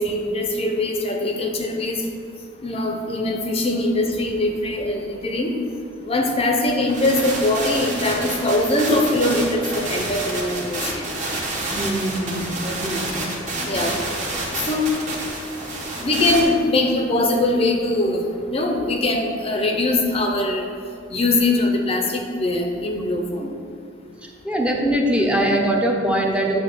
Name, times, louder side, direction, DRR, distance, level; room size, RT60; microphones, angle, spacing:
voice 1, 0.0-2.1 2.6-5.6 6.0-11.1 13.6-14.0 14.6-14.9 15.3-15.4 16.0-20.7 21.1-23.5, left 2 dB, 30° left, 3 dB, 0.6 m, -22 dB
sound 1, 6.9-16.4, right 2 dB, 40° right, 1.3 m, -29 dB
voice 2, 11.7-13.3 14.3-14.4 24.2-26.6, right 1 dB, 5° right, 0 dB, 0.6 m, -22 dB
8.8 x 3.2 x 5.9 m, 2.5 s
head